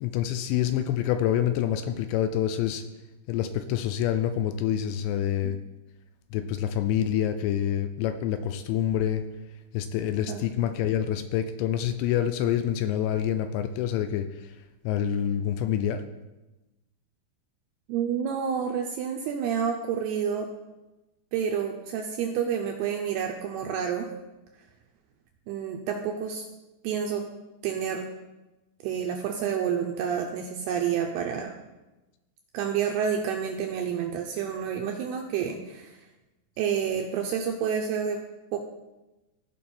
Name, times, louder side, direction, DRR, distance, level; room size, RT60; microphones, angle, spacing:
voice 1, 0.0-2.8 3.3-5.6 6.3-9.2 9.7-14.6 14.8-16.0, left 10 dB, 85° left, 9 dB, 2.7 m, -27 dB
voice 2, 17.9-20.5 21.3-24.1 25.5-26.4 26.8-27.2 27.6-28.0 28.8-31.5 32.5-36.0 36.6-38.2 38.5-38.6, right 7 dB, 80° right, 2 dB, 2.4 m, -29 dB
15.5 x 5.3 x 4.3 m, 1.1 s
omnidirectional pair, 5.3 m